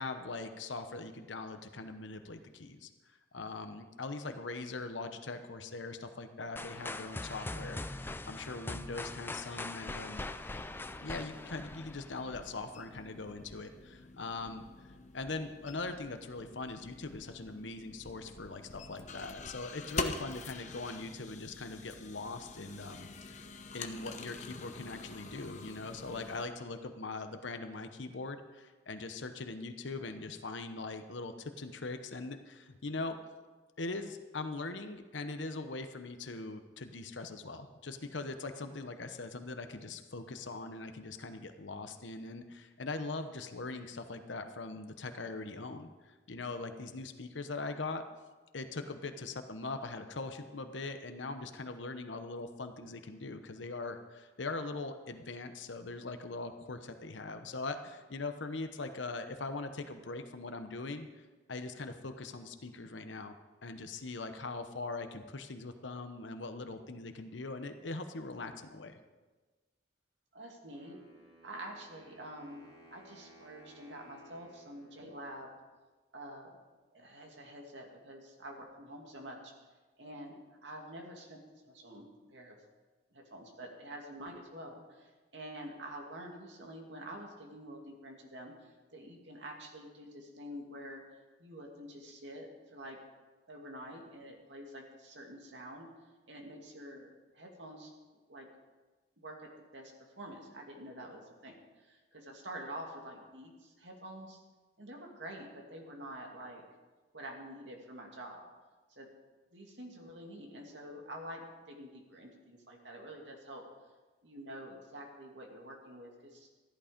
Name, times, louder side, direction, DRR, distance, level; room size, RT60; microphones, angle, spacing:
voice 1, 0.0-2.9 3.3-10.2 11.0-14.6 15.1-23.5 23.7-33.2 33.8-48.0 48.5-63.3 63.6-69.0, left 3 dB, 85° left, 8 dB, 1.0 m, -41 dB
sound 1, 6.6-12.5, left 2 dB, 10° left, 0.4 m, -42 dB
sound 2, 9.8-26.5, left 3 dB, 40° left, 0.8 m, -46 dB
voice 2, 70.3-71.0 71.4-75.5 76.1-76.5 76.9-79.4 80.0-80.4 80.6-81.4 81.6-82.6 83.1-91.0 91.4-93.0 93.5-95.9 96.3-97.1 97.3-97.9 98.3-98.5 99.2-104.4 104.8-106.6 107.1-108.4 108.9-109.1 109.5-113.6 114.2-116.5, right 1 dB, 75° right, 1 dB, 2.5 m, -47 dB
Wind instrument woodwind instrument, 70.7-75.7, right 2 dB, 35° right, 2.6 m, -59 dB
14.0 x 11.5 x 5.2 m, 1.3 s
head